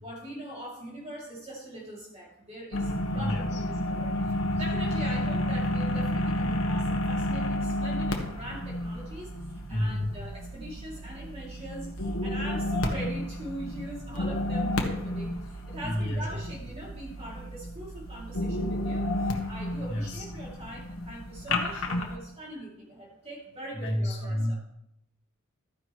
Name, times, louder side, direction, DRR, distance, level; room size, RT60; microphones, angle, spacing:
voice 1, 0.0-9.3 9.7-24.5, right 1 dB, 30° right, -5 dB, 2.7 m, -42 dB
sound 1, 2.7-22.2, left 1 dB, 80° left, 1.4 m, -31 dB
voice 2, 3.1-3.6 4.2-4.6 9.7-10.1 15.8-16.4 19.9-20.3 23.7-24.5, left 1 dB, 60° left, -2 dB, 2.4 m, -31 dB
13.0 x 10.0 x 3.1 m, 0.80 s
head